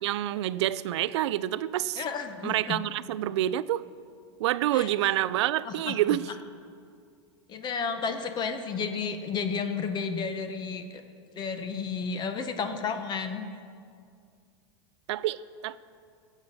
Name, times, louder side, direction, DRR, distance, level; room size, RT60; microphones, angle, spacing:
voice 1, 0.0-2.0 2.4-3.8 4.4-6.3 15.1-15.8, right 13 dB, 75° right, 18 dB, 0.4 m, -27 dB
voice 2, 2.0-2.8 4.7-4.9 5.6-6.2 7.5-11.0 11.3-13.5, left 5 dB, 30° left, 8 dB, 0.8 m, -32 dB
15.0 x 8.2 x 4.1 m, 2.3 s
hypercardioid pair, 120°, 15 cm